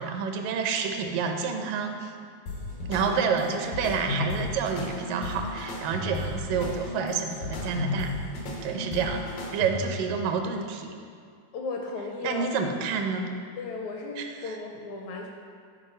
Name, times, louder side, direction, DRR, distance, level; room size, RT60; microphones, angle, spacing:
voice 1, 0.0-2.1 2.9-8.1 8.6-10.9 12.2-13.3 14.2-14.6, right 5 dB, 80° right, 4 dB, 2.4 m, -29 dB
sound 1, 2.5-10.1, left 2 dB, 90° left, 3.1 m, -34 dB
voice 2, 11.5-12.5 13.6-15.3, left 3 dB, 75° left, 1 dB, 1.8 m, -35 dB
12.0 x 4.6 x 5.4 m, 2.1 s
omnidirectional pair, 3.8 m